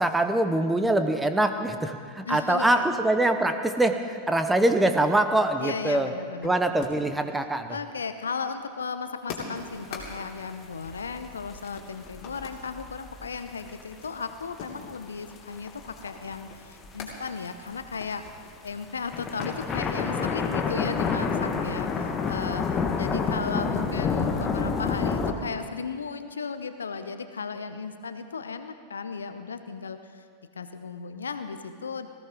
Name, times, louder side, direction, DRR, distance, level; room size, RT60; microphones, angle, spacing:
voice 1, 0.0-6.1 6.4-7.8, right 1 dB, 5° right, 8 dB, 0.9 m, -24 dB
voice 2, 2.2-2.9 5.6-6.8 7.7-18.3 18.6-30.2 30.5-32.1, left 5 dB, 70° left, 10 dB, 0.8 m, -35 dB
sound 1, 5.4-7.3 7.5-11.4 11.7-12.6 13.1-17.2 17.6-17.7 18.0-19.7 20.1-21.0, left 4 dB, 40° left, 2.9 m, -45 dB
sound 2, 9.6-9.7 10.0-14.0 14.5-15.0 15.3-16.4 16.8-18.3 18.8-25.3, left 5 dB, 25° left, 1.3 m, -29 dB
19.5 x 15.5 x 3.7 m, 2.1 s
figure-of-eight pair, 90°, 0 cm